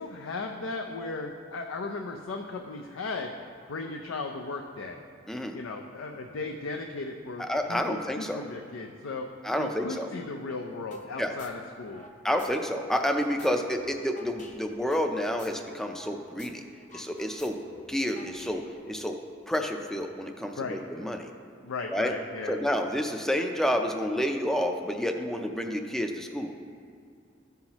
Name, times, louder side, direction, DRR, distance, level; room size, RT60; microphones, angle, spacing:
voice 1, 0.0-3.3 3.7-5.0 5.5-9.3 9.6-12.0 20.6-20.8 21.6-22.6, left 3 dB, 85° left, 3 dB, 0.5 m, -36 dB
voice 2, 7.4-8.4 9.4-10.1 11.2-11.3 12.2-16.6 16.9-17.6 17.9-19.2 19.5-21.3 21.9-22.1 22.5-26.6, equal, ahead, 4 dB, 0.4 m, -29 dB
sound 1, 10.9-11.1 11.4-12.5 12.8-16.1 16.4-16.5 16.8-18.9, left 2 dB, 40° left, 0.7 m, -48 dB
13.5 x 5.6 x 2.9 m, 2.4 s
head